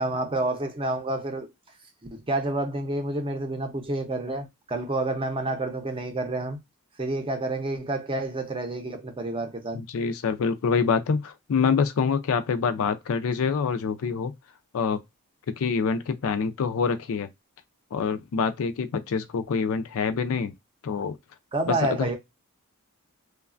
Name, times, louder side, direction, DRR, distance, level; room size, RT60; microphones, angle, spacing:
voice 1, 0.0-1.5 2.1-6.6 7.0-9.8 21.5-22.2, right 2 dB, 25° right, 0.6 m, -29 dB
voice 2, 9.7-14.3 14.7-15.0 15.6-17.3 17.9-20.5 20.8-21.2 21.7-22.1, left 5 dB, 65° left, 0.4 m, -26 dB
3.1 x 2.2 x 2.4 m
head